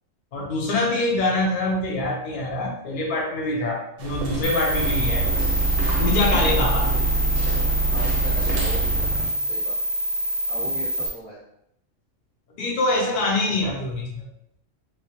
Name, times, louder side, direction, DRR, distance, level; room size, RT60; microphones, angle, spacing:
voice 1, 0.3-5.3 6.0-6.9 12.6-14.2, left 2 dB, 50° left, -1 dB, 0.8 m, -24 dB
sound 1, 4.0-9.1, right 2 dB, 65° right, 0.9 m, -33 dB
sound 2, 4.4-11.1, right 2 dB, 85° left, 1.2 m, -23 dB
voice 2, 7.9-9.7 10.5-11.4, right 1 dB, 30° right, -7 dB, 0.9 m, -38 dB
3.0 x 2.3 x 2.9 m, 0.75 s
omnidirectional pair, 1.3 m